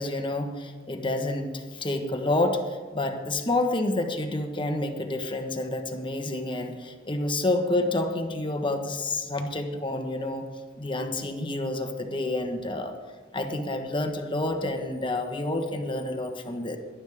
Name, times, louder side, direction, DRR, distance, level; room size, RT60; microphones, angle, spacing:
voice 1, 0.0-10.5 10.8-12.9 13.3-16.8, left 2 dB, 30° left, 5 dB, 1.3 m, -29 dB
18.5 x 11.5 x 3.6 m, 1.4 s
head